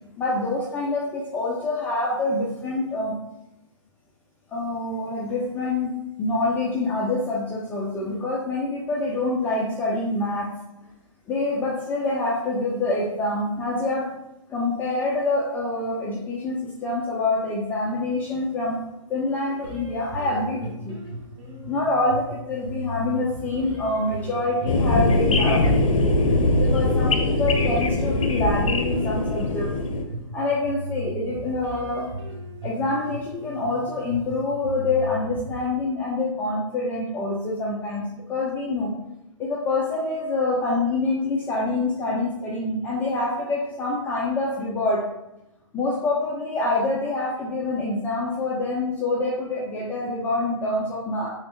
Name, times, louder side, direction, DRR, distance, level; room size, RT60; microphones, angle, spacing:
voice 1, 0.2-3.1 4.5-5.9 6.2-10.5 11.3-14.0 14.5-18.8 19.1-21.0 21.7-25.6 26.6-29.7 30.3-32.1 32.6-38.9 39.4-45.0 45.7-51.3, left 2 dB, 10° left, -5 dB, 0.3 m, -26 dB
sound 1, 19.6-35.6, equal, 50° right, 1.0 m, -37 dB
sound 2, 24.7-30.0, left 2 dB, 75° left, 0.6 m, -21 dB
3.1 x 3.0 x 3.0 m, 0.90 s
figure-of-eight pair, 130°, 17 cm